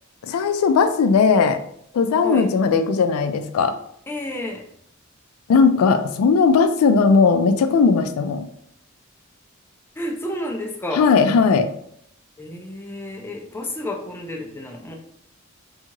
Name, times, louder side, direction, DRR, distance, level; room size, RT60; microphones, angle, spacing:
voice 1, 0.2-1.6 1.9-3.8 5.5-8.4 11.0-11.7, left 5 dB, 90° left, 9 dB, 0.3 m, -17 dB
voice 2, 4.1-4.6 10.0-11.1 12.4-14.9, left 1 dB, 10° left, 1 dB, 0.4 m, -30 dB
2.7 x 2.3 x 2.9 m, 0.68 s
head